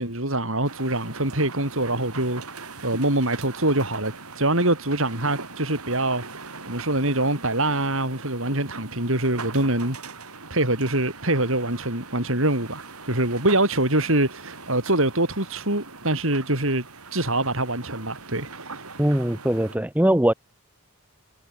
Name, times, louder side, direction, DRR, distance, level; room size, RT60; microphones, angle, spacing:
voice 1, 0.0-10.0 10.2-16.8 17.1-18.9, right 1 dB, 65° right, 8.0 m, -24 dB
sound 1, 0.6-19.8, right 4 dB, 90° right, 7.2 m, -41 dB
voice 2, 19.0-20.3, right 1 dB, 5° right, 0.9 m, -21 dB
head